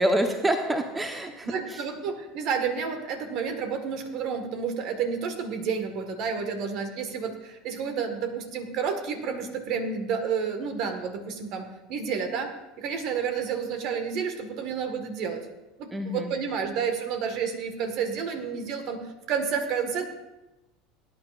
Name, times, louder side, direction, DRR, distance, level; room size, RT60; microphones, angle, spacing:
voice 1, 0.0-1.8 15.9-16.3, right 1 dB, 15° right, 5 dB, 1.1 m, -27 dB
voice 2, 1.4-12.5 12.8-15.4 15.8-19.0 19.3-20.1, right 6 dB, 55° right, 6 dB, 1.7 m, -30 dB
19.5 x 9.7 x 2.5 m, 1.0 s
hypercardioid pair, 75°, 0 cm